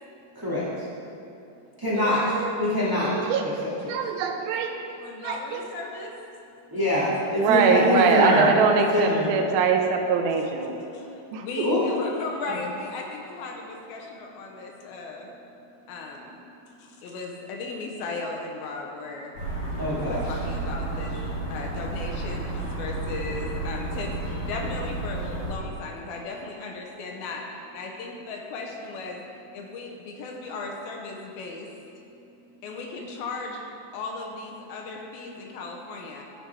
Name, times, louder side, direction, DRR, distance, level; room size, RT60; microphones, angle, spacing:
voice 1, 0.3-0.7 1.8-2.2 2.6-3.1 6.7-9.3 11.6-11.8 12.5-12.6 19.8-20.3, left 1 dB, 30° right, -9 dB, 0.4 m, -23 dB
voice 2, 1.9-2.5 5.0-6.1 10.4-10.5 10.8-11.1 11.4-15.3 15.9-16.2 17.0-19.3 19.9-21.1 21.5-29.2 29.5-31.7 32.6-33.6 33.9-36.2, left 3 dB, 75° left, 1 dB, 2.5 m, -36 dB
voice 3, 3.1-3.4 3.9-4.7 5.2-5.6 7.4-10.7 11.3-11.5, right 5 dB, 75° right, 3 dB, 2.5 m, -23 dB
sound 1, 19.3-25.5, right 2 dB, 45° left, 3.3 m, -32 dB
13.5 x 10.0 x 3.5 m, 2.8 s
omnidirectional pair, 4.7 m